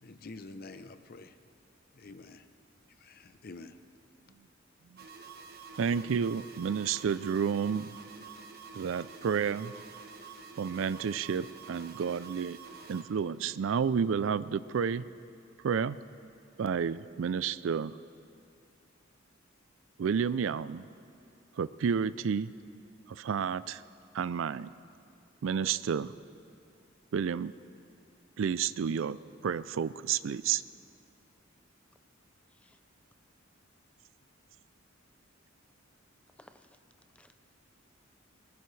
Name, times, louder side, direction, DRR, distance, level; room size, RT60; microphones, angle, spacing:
voice 1, 0.0-1.4 1.9-2.5 3.0-3.8, left 3 dB, 50° left, 9 dB, 0.7 m, -47 dB
sound 1, 5.0-13.0, right 5 dB, 50° right, 1.2 m, -48 dB
voice 2, 5.8-7.9 8.7-9.7 10.6-12.6 12.9-15.1 15.6-16.0 16.6-18.0 20.0-20.9 21.6-22.5 23.1-23.8 24.1-24.7 25.4-26.1 27.1-27.5 28.4-30.6, right 7 dB, 70° right, 16 dB, 0.4 m, -31 dB
voice 3, 32.5-32.8 36.3-36.8 37.1-37.3, left 1 dB, 5° left, 8 dB, 0.5 m, -59 dB
22.0 x 18.5 x 3.3 m, 2.5 s
head